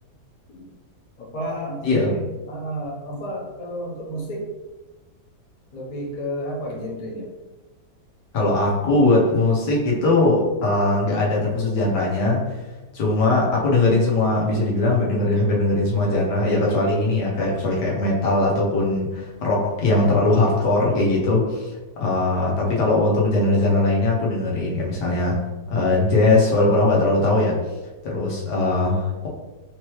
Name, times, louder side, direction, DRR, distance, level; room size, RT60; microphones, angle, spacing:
voice 1, 1.2-2.2 2.5-4.5 5.7-7.3, equal, 30° left, -3 dB, 0.8 m, -31 dB
voice 2, 8.3-12.5 12.9-21.7 22.0-25.4 25.7-27.6 28.0-29.3, left 2 dB, 80° left, -3 dB, 1.6 m, -20 dB
4.5 x 3.0 x 3.1 m, 1.1 s
omnidirectional pair, 1.8 m